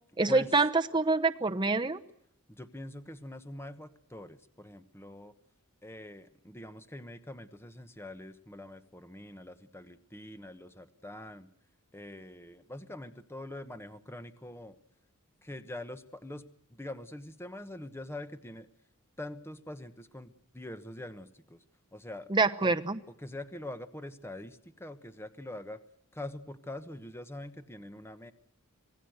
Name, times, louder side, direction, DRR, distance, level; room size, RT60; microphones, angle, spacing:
voice 1, 0.2-2.0 22.3-23.0, right 3 dB, 20° right, 6 dB, 0.9 m, -26 dB
voice 2, 2.5-5.3 5.8-11.5 11.9-14.8 15.4-18.7 19.2-21.6 21.9-22.3 22.6-22.7 23.2-25.8 26.1-28.3, left 1 dB, 10° left, 10 dB, 1.2 m, -44 dB
26.5 x 18.5 x 8.0 m, 0.71 s
head